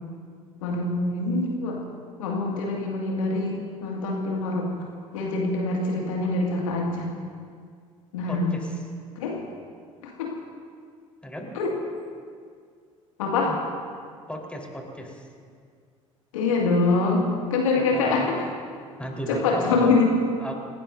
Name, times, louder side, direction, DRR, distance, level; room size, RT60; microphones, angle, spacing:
voice 1, 0.6-1.8 2.2-4.7 5.1-7.1 8.1-8.6 9.2-9.4 10.0-10.3 11.5-11.7 13.2-13.5 16.3-18.5 19.3-20.1, left 3 dB, 75° left, -1 dB, 2.2 m, -24 dB
voice 2, 8.3-8.8 11.2-11.5 13.4-13.6 14.3-15.3 17.8-18.3 19.0-20.0 20.4-20.5, equal, 5° left, -1 dB, 4.2 m, -35 dB
28.5 x 18.0 x 2.7 m, 2.1 s
figure-of-eight pair, 55°, 17 cm